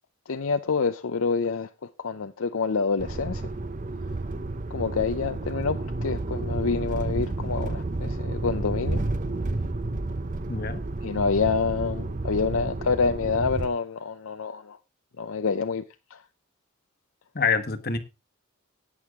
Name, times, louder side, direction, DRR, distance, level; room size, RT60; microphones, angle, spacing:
voice 1, 0.3-1.7 2.0-3.4 4.7-9.0 11.0-14.8 15.2-15.8 16.1-16.2, left 5 dB, 70° left, 0.6 m, -27 dB
sound 1, 3.0-13.7, right 2 dB, 35° right, 0.7 m, -31 dB
voice 2, 10.5-10.8 17.3-18.0, left 5 dB, 45° left, 1.3 m, -26 dB
18.5 x 6.4 x 3.6 m
head